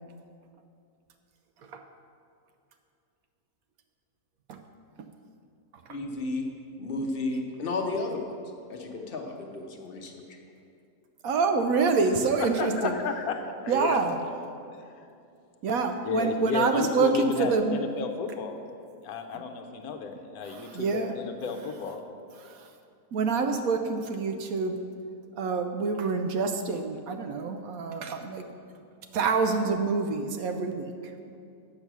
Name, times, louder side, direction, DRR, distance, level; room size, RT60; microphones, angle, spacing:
voice 1, 5.9-6.5 6.8-8.3 8.7-10.2, left 3 dB, 45° left, 2 dB, 0.9 m, -32 dB
voice 2, 11.2-12.9 13.7-14.2 15.6-17.8 19.3-19.4 20.4-21.1 22.4-22.7 23.1-24.8 25.4-28.4 29.1-31.1, right 4 dB, 70° right, 6 dB, 0.9 m, -27 dB
voice 3, 12.6-14.0 14.8-15.1 16.0-18.6 19.0-22.0, left 5 dB, 70° left, 6 dB, 1.2 m, -32 dB
8.0 x 6.8 x 6.0 m, 2.5 s
omnidirectional pair, 1.7 m